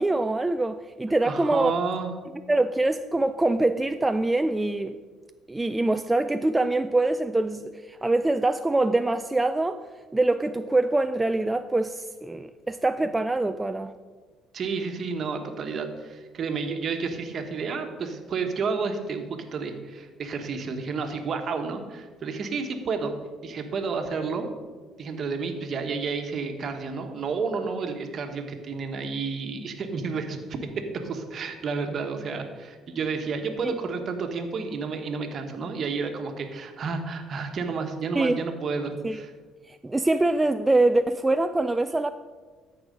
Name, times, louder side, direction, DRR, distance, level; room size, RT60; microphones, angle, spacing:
voice 1, 0.0-1.7 2.5-5.0 5.5-9.8 10.1-13.9 33.6-33.7 38.2-38.4 39.0-39.2 39.7-42.1, right 2 dB, 15° right, 9 dB, 0.3 m, -24 dB
voice 2, 1.2-2.1 14.5-23.1 23.4-24.5 25.0-39.3, right 4 dB, 50° right, 6 dB, 1.2 m, -31 dB
13.5 x 4.9 x 5.2 m, 1.4 s
cardioid pair, 95°, 0 cm